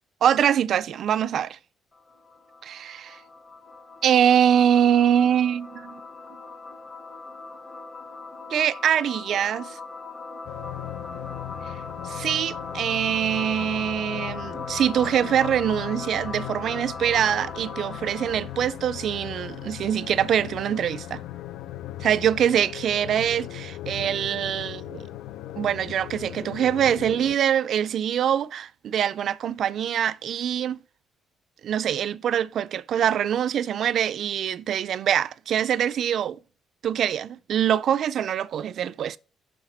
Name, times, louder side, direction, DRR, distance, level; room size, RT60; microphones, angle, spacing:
voice 1, 0.2-1.6 2.6-3.2 4.0-6.0 8.5-9.8 12.0-21.2 22.0-25.0 25.6-30.8 31.6-36.4 36.8-39.2, right 9 dB, 50° right, 0.3 m, -24 dB
sound 1, 1.9-18.6, left 3 dB, 25° left, 0.9 m, -39 dB
sound 2, 10.4-27.4, left 14 dB, 90° left, 0.3 m, -38 dB
6.4 x 5.8 x 4.3 m
cardioid pair, 170°, 0 cm